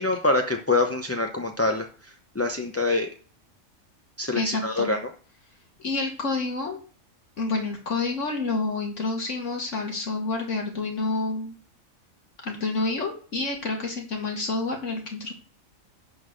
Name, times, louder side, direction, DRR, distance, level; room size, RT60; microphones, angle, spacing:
voice 1, 0.0-3.1 4.2-5.0, left 2 dB, 20° left, 3 dB, 0.4 m, -25 dB
voice 2, 4.3-4.9 5.8-6.8 7.4-11.5 12.4-15.3, left 3 dB, 60° left, 2 dB, 1.8 m, -28 dB
11.0 x 4.0 x 6.4 m, 0.41 s
omnidirectional pair, 1.4 m